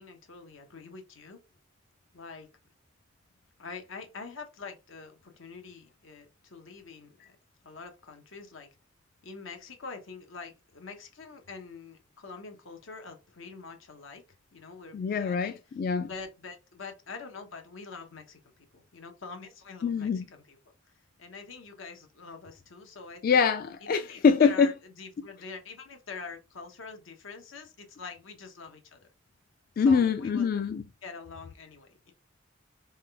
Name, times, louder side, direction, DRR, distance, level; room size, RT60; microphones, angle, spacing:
voice 1, 0.0-1.4 2.1-2.5 3.6-7.4 7.6-8.7 9.2-14.2 14.5-15.6 16.1-20.6 20.9-23.4 23.8-29.1 29.8-30.5 31.0-32.1, left 4 dB, 80° left, 1.0 m, -45 dB
voice 2, 14.9-16.1 19.8-20.2 23.2-24.7 29.8-30.8, left 5 dB, 45° left, 0.3 m, -24 dB
3.6 x 3.3 x 3.4 m
head